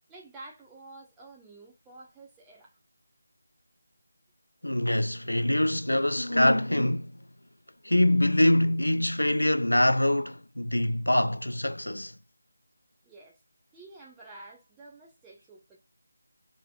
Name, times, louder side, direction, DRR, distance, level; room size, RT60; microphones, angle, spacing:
voice 1, 0.1-2.8 13.0-13.4 13.7-15.8, right 2 dB, 10° right, 1.2 m, -49 dB
voice 2, 4.6-7.1 7.8-12.1, left 1 dB, 80° left, 0.3 m, -24 dB
4.6 x 3.7 x 2.4 m
figure-of-eight pair, 160°, 0 cm